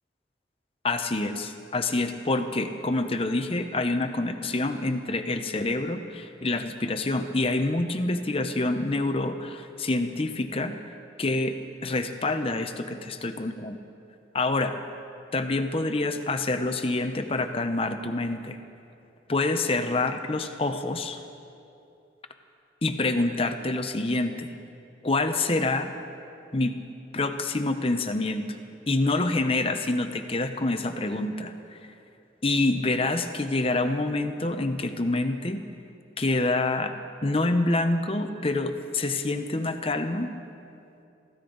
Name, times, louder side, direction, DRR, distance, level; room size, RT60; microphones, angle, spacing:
voice 1, 0.8-10.8 11.2-11.6 11.8-13.8 14.3-14.8 15.3-18.6 19.3-21.2 22.8-24.5 25.0-25.9 26.5-26.8 27.1-28.5 28.9-31.8 32.4-35.6 36.2-36.9 37.2-40.3, left 2 dB, 30° left, 7 dB, 0.8 m, -27 dB
23.0 x 15.5 x 4.0 m, 2.6 s
head